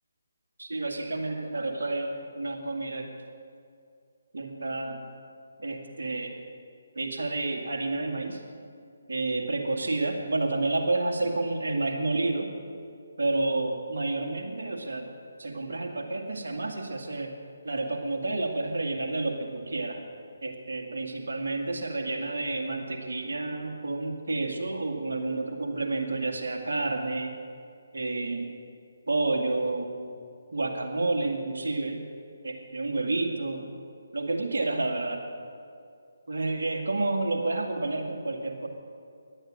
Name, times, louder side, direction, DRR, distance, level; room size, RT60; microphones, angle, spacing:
voice 1, 0.6-3.1 4.3-5.0 5.6-6.3 7.0-8.4 9.1-12.5 13.2-15.1 15.4-17.3 17.6-20.0 20.4-27.3 27.9-28.5 29.1-29.9 30.5-32.0 32.4-33.7 34.1-35.2 36.3-38.7, right 2 dB, 60° right, 2 dB, 2.2 m, -30 dB
16.5 x 11.5 x 6.5 m, 2.4 s
figure-of-eight pair, 145°, 0 cm